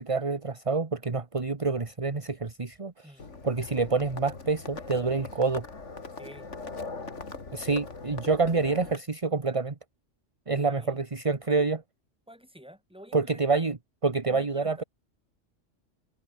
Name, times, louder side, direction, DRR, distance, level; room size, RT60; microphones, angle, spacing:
voice 1, 0.0-3.1 3.4-5.6 7.5-9.7 10.5-11.8 13.1-13.8 14.0-14.8, right 4 dB, 25° right, 1.3 m, -27 dB
Livestock farm animals working animals, 3.2-9.0, left 4 dB, 70° left, 3.0 m, -41 dB
voice 2, 6.2-6.5 10.6-11.0 11.5-11.7 12.3-13.7 14.3-14.8, equal, 5° right, 4.1 m, -49 dB
omnidirectional pair, 1.3 m